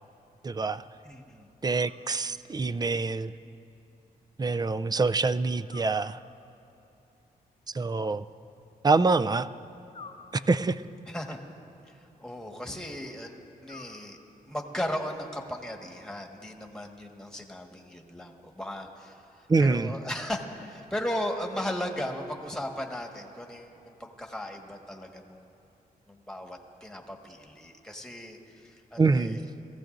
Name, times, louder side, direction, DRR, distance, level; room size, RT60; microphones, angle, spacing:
voice 1, 0.4-0.8 1.6-3.3 4.4-6.2 7.7-8.2 8.8-9.5 10.3-10.8 19.5-19.9 29.0-29.4, right 3 dB, 25° right, 13 dB, 0.4 m, -25 dB
voice 2, 1.0-1.5 11.1-11.4 11.8-14.2 14.5-25.5 26.1-29.5, left 1 dB, 5° left, 2 dB, 1.6 m, -37 dB
sound 1, 1.7-2.6 5.7-6.7 9.9-11.0 13.6-14.6, left 5 dB, 40° left, 0.7 m, -51 dB
22.5 x 15.0 x 2.6 m, 2.8 s
cardioid pair, 70°, 16 cm